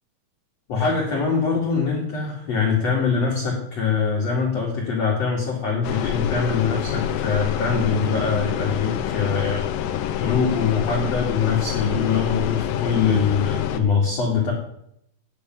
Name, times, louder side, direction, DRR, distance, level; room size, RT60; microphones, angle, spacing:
voice 1, 0.7-9.6 10.1-14.5, left 5 dB, 45° left, -2 dB, 3.0 m, -23 dB
sound 1, 5.8-13.8, left 10 dB, 85° left, 3.2 m, -27 dB
10.0 x 8.6 x 9.2 m, 0.73 s
omnidirectional pair, 4.8 m